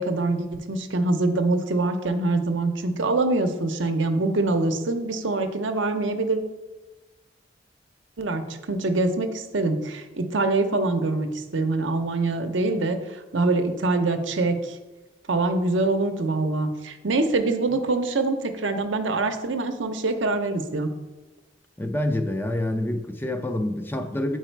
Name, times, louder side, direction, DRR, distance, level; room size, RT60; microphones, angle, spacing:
voice 1, 0.0-6.4 8.2-14.8 15.3-20.9, right 2 dB, 70° right, 0.7 m, -24 dB
voice 2, 21.8-24.4, left 1 dB, 10° left, 0.4 m, -27 dB
8.1 x 4.7 x 4.5 m
head